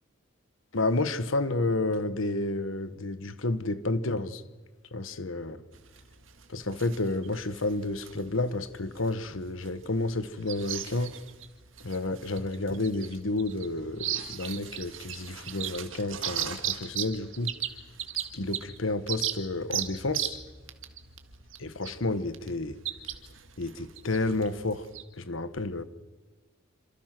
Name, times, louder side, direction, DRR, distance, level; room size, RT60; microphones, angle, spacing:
voice 1, 0.7-4.4 4.9-5.6 6.5-11.1 11.8-17.5 18.3-20.4 21.6-22.8 23.6-24.9 25.2-25.8, left 2 dB, 90° left, 1.3 m, -30 dB
sound 1, 5.7-25.0, right 11 dB, 80° right, 1.9 m, -38 dB
27.5 x 27.0 x 6.1 m
head